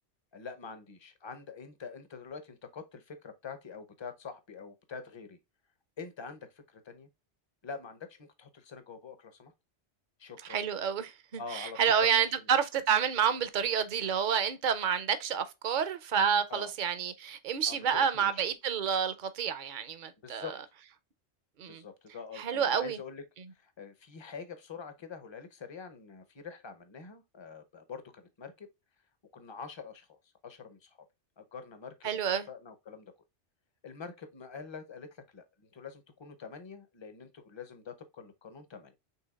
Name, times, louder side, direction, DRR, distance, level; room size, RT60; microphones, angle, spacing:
voice 1, 0.3-5.4 6.0-7.1 7.6-9.5 10.2-10.7 11.4-12.1 16.5-16.7 17.7-18.4 20.2-20.6 21.7-23.2 23.5-28.7 29.3-30.2 30.4-31.0 31.4-32.1 32.5-33.1 33.8-38.9, left 5 dB, 30° left, 0.6 m, -45 dB
voice 2, 10.5-20.5 21.6-21.8 22.4-23.0 32.0-32.5, right 7 dB, 50° right, 0.7 m, -29 dB
5.6 x 3.5 x 2.3 m
omnidirectional pair, 1.2 m